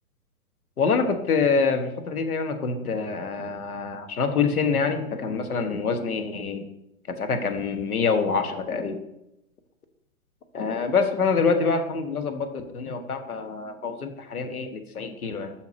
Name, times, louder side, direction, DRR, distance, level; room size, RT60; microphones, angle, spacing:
voice 1, 0.8-6.6 7.1-9.0 10.5-15.5, left 5 dB, 90° left, 6 dB, 1.3 m, -26 dB
5.7 x 4.4 x 6.1 m, 0.86 s
hypercardioid pair, 140°, 43 cm